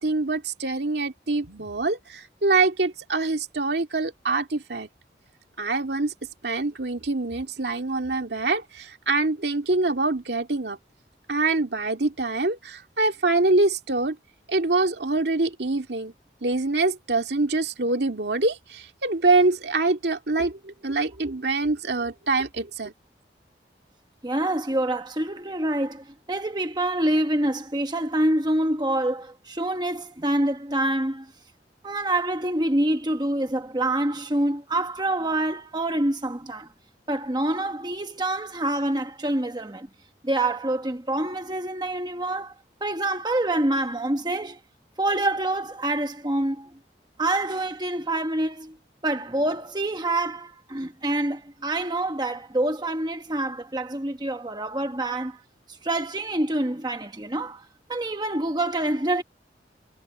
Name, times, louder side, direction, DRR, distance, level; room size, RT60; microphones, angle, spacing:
voice 1, 0.0-4.9 5.6-6.1 6.4-10.8 11.3-14.2 14.5-16.1 16.4-22.9, right 3 dB, 75° right, 2.2 m, -25 dB
voice 2, 24.2-31.3 31.8-36.7 37.1-39.9 40.2-42.5 42.8-44.6 45.0-46.7 47.2-48.8 49.0-55.4 55.7-59.2, right 1 dB, 25° right, 1.1 m, -26 dB
head